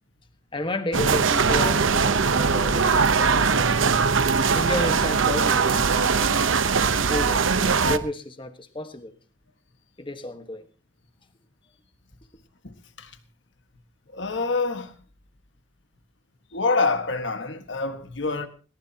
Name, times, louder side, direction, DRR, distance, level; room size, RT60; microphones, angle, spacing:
voice 1, 0.5-3.9 4.5-6.5 7.1-9.1 10.0-10.7, left 1 dB, 25° left, 1.4 m, -32 dB
sound 1, 0.9-8.0, right 5 dB, 85° right, 0.9 m, -21 dB
voice 2, 12.6-13.2 14.1-15.0 16.5-18.5, left 3 dB, 65° left, 1.7 m, -26 dB
21.0 x 19.0 x 2.9 m
head